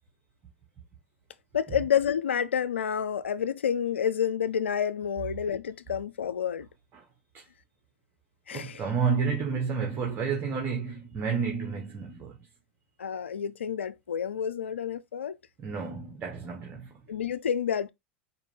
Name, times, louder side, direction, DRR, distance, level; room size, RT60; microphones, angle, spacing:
voice 1, 1.5-6.7 8.5-8.8 13.0-15.4 17.1-17.9, left 8 dB, 85° left, 0.3 m, -29 dB
voice 2, 8.5-12.3 15.6-16.9, right 5 dB, 40° right, 1.4 m, -30 dB
4.5 x 2.6 x 3.5 m
hypercardioid pair, 85°, 6 cm